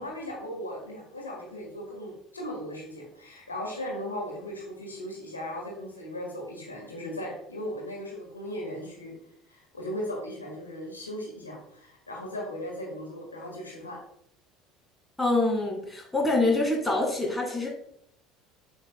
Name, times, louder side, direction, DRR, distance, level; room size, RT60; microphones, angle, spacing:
voice 1, 0.0-9.1 9.5-14.0, equal, 85° left, -2 dB, 1.5 m, -37 dB
voice 2, 15.2-17.7, left 2 dB, 10° left, 0 dB, 1.9 m, -25 dB
7.7 x 6.2 x 2.2 m, 0.70 s
figure-of-eight pair, 65°, 0 cm